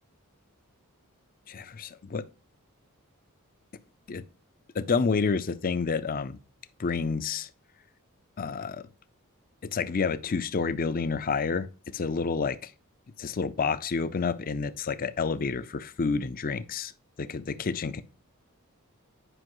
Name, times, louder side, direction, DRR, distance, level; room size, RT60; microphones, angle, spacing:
voice 1, 1.5-2.2 4.1-4.2 4.7-6.4 6.8-7.5 8.4-8.8 9.7-11.7 11.9-12.6 13.2-16.9 17.2-18.0, left 5 dB, 40° left, 0.5 m, -29 dB
9.9 x 5.4 x 3.0 m
head